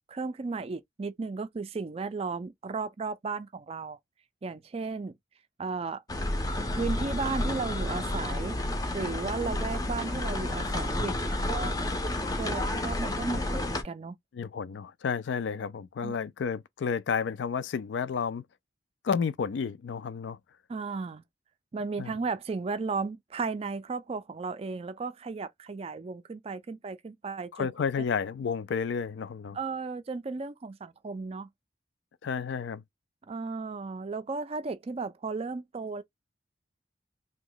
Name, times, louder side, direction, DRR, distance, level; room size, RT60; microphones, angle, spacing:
voice 1, 0.1-4.0 4.4-5.2 5.6-6.0 6.7-8.6 8.9-11.7 12.1-14.2 16.0-16.2 20.7-21.2 21.7-27.7 28.0-28.1 29.5-31.5 33.3-36.0, right 4 dB, 30° right, 0.3 m, -35 dB
sound 1, 6.1-13.8, left 1 dB, 20° left, 0.5 m, -31 dB
voice 2, 14.3-18.4 19.0-20.4 22.0-22.1 27.5-29.6 32.2-32.8, left 6 dB, 75° left, 0.3 m, -31 dB
2.9 x 2.1 x 3.8 m
head